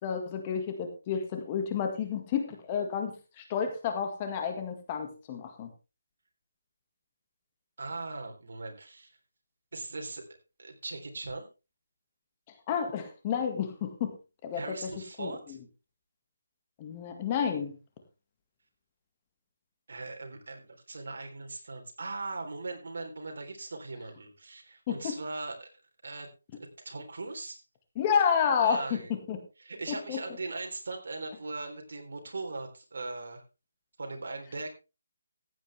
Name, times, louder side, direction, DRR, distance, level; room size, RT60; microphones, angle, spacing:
voice 1, 0.0-5.7 12.7-14.1 14.4-14.6 15.2-15.3 16.8-17.7 24.9-25.2 28.0-29.4 29.9-30.2, left 7 dB, 20° left, 5 dB, 1.8 m, -30 dB
voice 2, 7.8-9.1 9.7-10.2 10.6-11.5 14.5-15.6 19.9-25.7 26.0-26.3 26.8-27.6 28.6-29.1 29.6-33.4 34.0-34.7, right 3 dB, 65° right, 3 dB, 3.6 m, -39 dB
15.0 x 9.1 x 3.4 m, 0.29 s
hypercardioid pair, 170°, 0 cm